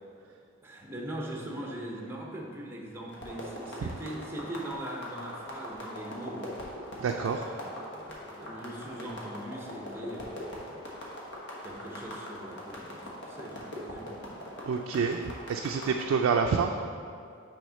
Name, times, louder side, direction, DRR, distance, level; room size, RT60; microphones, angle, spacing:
voice 1, 0.6-6.6 7.2-10.7 11.6-14.2 14.7-15.0, right 1 dB, 10° right, -1 dB, 0.7 m, -41 dB
sound 1, 3.1-16.0, left 1 dB, 60° left, 1.2 m, -42 dB
voice 2, 7.0-7.5 14.7-15.2 15.5-16.7, right 5 dB, 85° right, 3 dB, 0.3 m, -27 dB
6.4 x 3.4 x 5.6 m, 2.3 s
head